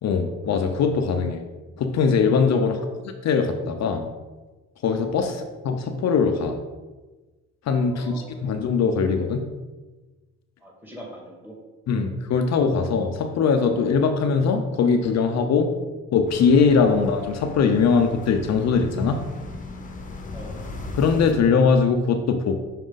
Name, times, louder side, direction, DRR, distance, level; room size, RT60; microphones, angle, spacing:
voice 1, 0.0-1.4 1.8-2.8 3.2-4.1 4.8-6.5 7.7-8.1 8.4-9.5 11.9-15.7 16.1-19.2 20.9-22.6, left 5 dB, 60° left, 5 dB, 0.6 m, -21 dB
voice 2, 2.6-3.0 5.2-5.4 7.9-8.5 10.6-11.6 11.9-12.0 20.3-20.7, equal, 5° right, -2 dB, 2.1 m, -43 dB
sound 1, 16.3-21.3, left 2 dB, 25° left, 1.0 m, -37 dB
6.3 x 4.5 x 3.9 m, 1.2 s
cardioid pair, 90°, 30 cm